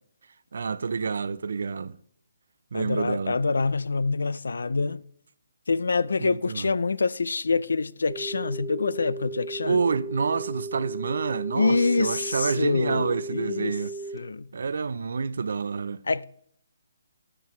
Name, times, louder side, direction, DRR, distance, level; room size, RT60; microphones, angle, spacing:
voice 1, 0.5-2.0 2.7-3.4 6.2-6.7 9.6-13.9 14.5-16.0, right 5 dB, 60° right, 0.5 m, -28 dB
voice 2, 2.7-5.0 5.7-9.8 11.5-13.7 14.1-14.5 16.1-16.2, left 4 dB, 85° left, 0.5 m, -26 dB
sound 1, 8.1-14.2, right 3 dB, 10° right, 0.6 m, -36 dB
12.5 x 8.9 x 3.2 m
hypercardioid pair, 170°, 0 cm